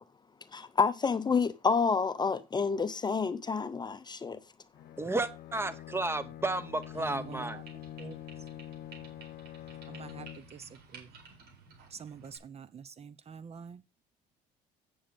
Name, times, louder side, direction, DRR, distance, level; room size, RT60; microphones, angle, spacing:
voice 1, 0.5-4.4, left 5 dB, 25° left, 0.7 m, -29 dB
Bowed string instrument, 4.7-10.7, left 12 dB, 65° left, 0.9 m, -46 dB
voice 2, 5.0-7.6, right 2 dB, 15° right, 1.1 m, -32 dB
sound 1, 6.8-12.4, right 4 dB, 70° right, 4.6 m, -54 dB
voice 3, 6.9-8.5 9.9-11.1 11.9-13.8, right 6 dB, 40° right, 0.7 m, -47 dB
8.6 x 7.0 x 5.2 m
cardioid pair, 110°, 17 cm